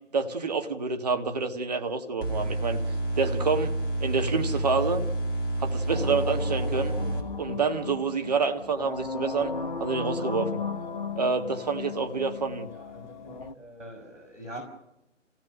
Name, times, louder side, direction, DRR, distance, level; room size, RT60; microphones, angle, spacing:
voice 1, 0.1-2.8 3.1-5.0 5.6-7.0 7.4-9.5 9.8-10.6 11.2-12.7, right 4 dB, 30° right, 1.5 m, -28 dB
sound 1, 2.2-7.2, right 1 dB, 20° left, 1.8 m, -29 dB
sound 2, 5.9-13.5, left 4 dB, 40° left, 1.2 m, -35 dB
voice 2, 12.7-14.6, right 1 dB, 70° right, 5.8 m, -44 dB
27.5 x 16.5 x 6.5 m
figure-of-eight pair, 150°, 38 cm